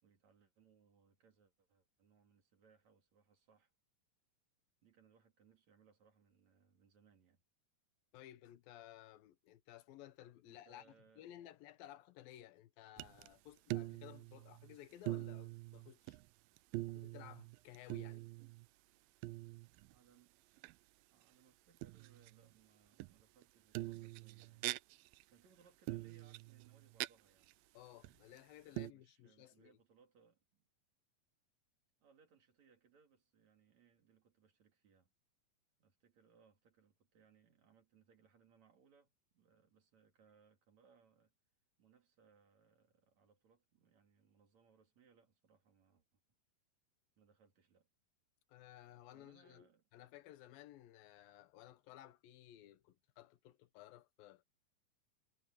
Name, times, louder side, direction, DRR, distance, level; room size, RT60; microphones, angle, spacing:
voice 1, 0.0-3.7 4.8-7.4 10.4-11.3 19.8-20.8 21.1-24.8 25.3-27.6 28.7-30.7 32.0-35.1 35.8-41.3 41.8-46.2 47.2-47.9 49.1-49.9, right 6 dB, 55° right, 3.7 m, -70 dB
voice 2, 8.1-16.2 16.9-18.2 27.7-29.8 48.5-54.5, left 13 dB, 90° left, 2.8 m, -57 dB
sound 1, 13.0-13.3 13.6-14.8 15.1-16.3 16.6-18.7 19.2-20.0 20.6-20.7 21.8-22.5 23.0-23.4 23.8-25.2 25.9-27.1 27.5-27.6 28.0-28.4 28.8-28.9, right 20 dB, 90° right, 2.3 m, -44 dB
omnidirectional pair, 4.0 m